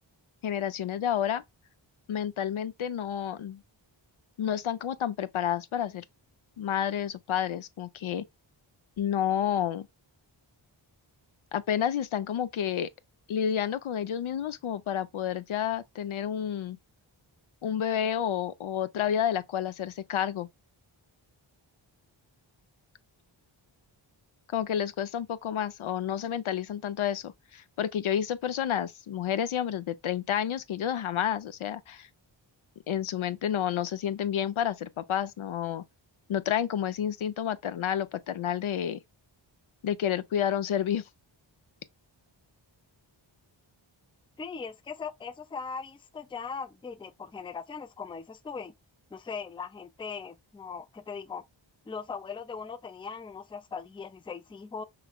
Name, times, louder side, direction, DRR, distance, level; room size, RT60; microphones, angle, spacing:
voice 1, 0.4-1.4 2.1-3.6 4.4-6.0 6.6-8.2 9.0-9.9 11.5-12.9 13.3-16.8 17.6-20.5 24.5-32.1 32.9-35.8 36.3-39.0 39.8-41.0, left 9 dB, 80° left, 0.6 m, -30 dB
voice 2, 44.4-48.7 49.1-51.4 51.9-54.8, left 5 dB, 10° left, 0.3 m, -39 dB
4.8 x 3.2 x 2.2 m
wide cardioid pair, 75°, 48 cm